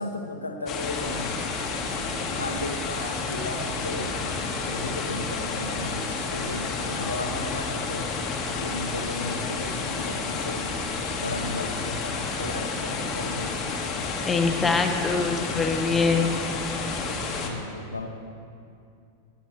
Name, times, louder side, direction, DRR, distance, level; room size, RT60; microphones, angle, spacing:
voice 1, 0.0-1.3 2.3-4.2 4.7-8.1 8.6-10.7 11.2-13.7 16.0-16.2 17.4-18.1, left 2 dB, 80° left, 5 dB, 0.9 m, -35 dB
sound 1, 0.7-17.5, left 4 dB, 30° left, 1.4 m, -30 dB
voice 2, 14.3-16.4, left 4 dB, 15° left, 4 dB, 1.0 m, -24 dB
18.5 x 10.5 x 3.1 m, 2.5 s
figure-of-eight pair, 90°, 0 cm